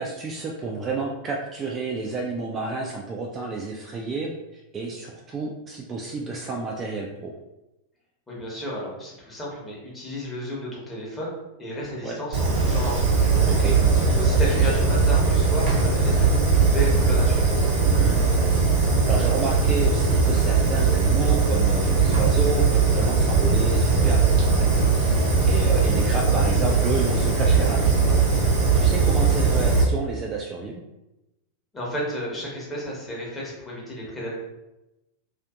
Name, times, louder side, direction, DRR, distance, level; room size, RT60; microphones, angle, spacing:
voice 1, 0.0-7.3 12.0-12.2 13.4-13.8 17.8-18.2 19.1-30.8, right 3 dB, 25° right, -1 dB, 0.3 m, -31 dB
voice 2, 8.3-13.5 14.1-16.3 16.7-17.5 31.7-34.3, equal, 15° left, -5 dB, 0.9 m, -32 dB
Fire, 12.3-29.8, right 4 dB, 45° right, 0.7 m, -20 dB
2.5 x 2.4 x 2.3 m, 0.96 s
figure-of-eight pair, 90°, 0 cm